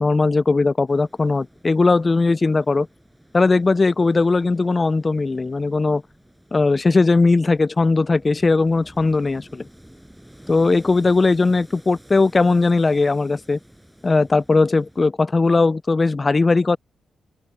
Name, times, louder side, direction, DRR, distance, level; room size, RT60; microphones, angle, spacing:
voice 1, 0.0-2.9 3.3-6.0 6.5-9.6 10.5-13.6 14.0-16.8, left 3 dB, 25° left, 0.4 m, -18 dB
sound 1, 0.9-15.1, equal, 5° right, 6.1 m, -50 dB
cardioid pair, 90°, 0 cm